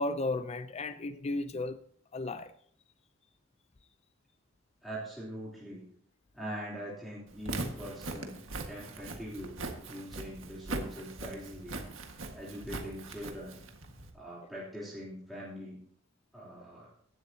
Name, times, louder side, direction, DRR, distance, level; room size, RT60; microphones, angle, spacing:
voice 1, 0.0-1.8 2.1-2.5, left 2 dB, 30° left, 0.4 m, -34 dB
voice 2, 4.8-5.8 6.3-9.5 9.9-11.8 12.3-13.6 14.1-15.8 16.3-16.9, equal, ahead, 3.2 m, -42 dB
Walk footsteps, 7.3-14.1, right 2 dB, 65° right, 1.7 m, -40 dB
16.0 x 11.5 x 2.8 m
head